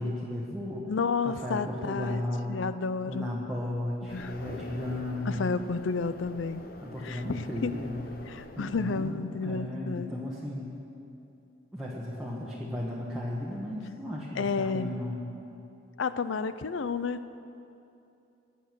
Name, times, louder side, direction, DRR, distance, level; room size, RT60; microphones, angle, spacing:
voice 1, 0.0-0.9 1.2-2.7 3.1-5.6 6.8-10.8 11.7-15.2, left 1 dB, 5° right, -7 dB, 1.2 m, -35 dB
voice 2, 0.9-2.2 2.5-3.3 4.1-4.3 5.3-6.6 7.0-7.7 8.3-10.1 14.4-14.9 16.0-17.4, left 4 dB, 90° left, 13 dB, 0.5 m, -31 dB
sound 1, 4.1-9.1, left 2 dB, 50° left, 0.9 m, -46 dB
20.0 x 6.9 x 6.0 m, 2.8 s
head